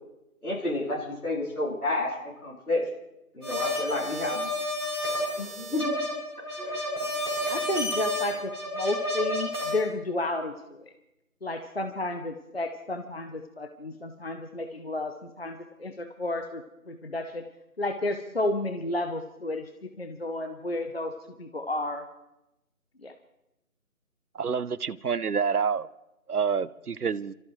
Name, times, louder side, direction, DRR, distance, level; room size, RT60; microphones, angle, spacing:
voice 1, 0.4-2.9 3.3-4.5 5.4-5.9 6.6-6.9, left 2 dB, 80° left, -4 dB, 4.9 m, -30 dB
sound 1, 3.4-9.8, left 1 dB, ahead, 3.2 m, -30 dB
voice 2, 7.5-10.9 11.4-17.4 17.8-21.1 21.4-22.1 23.0-23.1, left 2 dB, 45° left, 7 dB, 0.8 m, -32 dB
voice 3, 24.3-25.9 26.3-27.3, right 6 dB, 90° right, 17 dB, 0.7 m, -28 dB
27.0 x 14.0 x 3.1 m, 0.90 s
figure-of-eight pair, 165°, 44 cm